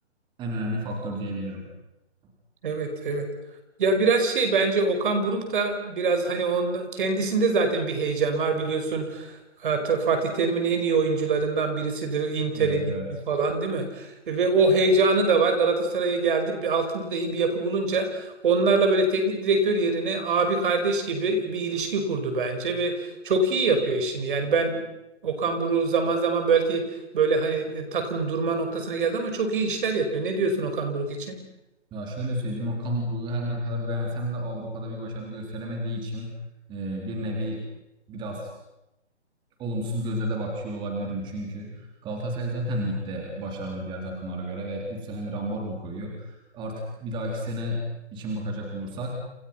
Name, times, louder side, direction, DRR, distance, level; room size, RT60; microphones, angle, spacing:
voice 1, 0.4-1.6 12.5-13.1 31.9-36.3 36.7-37.6 38.1-38.5 39.6-47.8 48.1-49.2, equal, 15° right, 0 dB, 4.2 m, -31 dB
voice 2, 2.6-3.3 3.8-9.3 9.6-12.9 13.3-24.8 25.2-26.9 27.1-31.4, right 3 dB, 45° right, 6 dB, 5.5 m, -24 dB
30.0 x 28.5 x 5.8 m, 0.90 s
hypercardioid pair, 155°, 35 cm